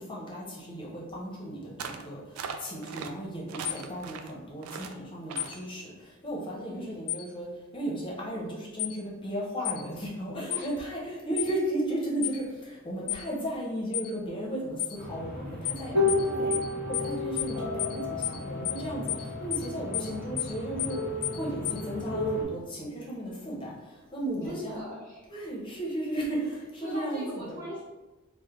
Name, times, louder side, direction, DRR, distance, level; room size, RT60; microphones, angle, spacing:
voice 1, 0.0-7.5 7.7-16.1 16.4-16.5 16.8-21.0 21.3-24.8 25.3-27.6, right 1 dB, 25° left, -3 dB, 0.6 m, -35 dB
sound 1, 1.8-2.1 2.4-3.1 3.5-4.3 4.6-4.9 5.3-5.6, right 6 dB, 90° right, 0.3 m, -39 dB
sound 2, 3.6-3.8 5.4-5.5 7.1-7.2 8.8-9.0 9.6-9.8 10.5-10.7 11.4-11.5 12.2-12.4 13.1-13.2 13.9-14.1 14.8-15.0 15.6-15.8 16.1-16.2 16.5-16.7 16.9-17.1 17.4-17.5 17.8-18.0 18.2-18.4 18.6-18.8 19.1-19.2 19.5-19.7 19.9-20.1 20.4-20.5 20.8-21.0 21.2-21.4 21.6-21.8, left 15 dB, 80° left, 0.3 m, -31 dB
voice 2, 6.7-7.1 10.4-10.6 16.2-16.6 24.4-25.3 26.8-27.8, equal, 40° right, -9 dB, 0.9 m, -40 dB
sound 3, 14.9-22.4, left 2 dB, 70° right, 1.1 m, -32 dB
3.1 x 2.0 x 3.4 m, 1.2 s
head